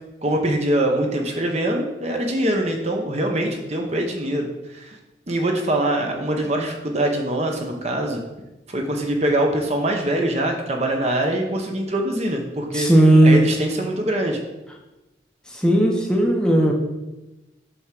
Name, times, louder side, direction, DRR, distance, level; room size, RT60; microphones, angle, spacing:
voice 1, 0.2-5.0 5.3-8.2 8.7-12.9 13.2-14.4, right 1 dB, 35° right, 2 dB, 0.8 m, -23 dB
voice 2, 12.7-13.5 15.6-16.7, right 1 dB, 5° left, -1 dB, 0.8 m, -15 dB
7.7 x 3.6 x 5.9 m, 1.0 s
head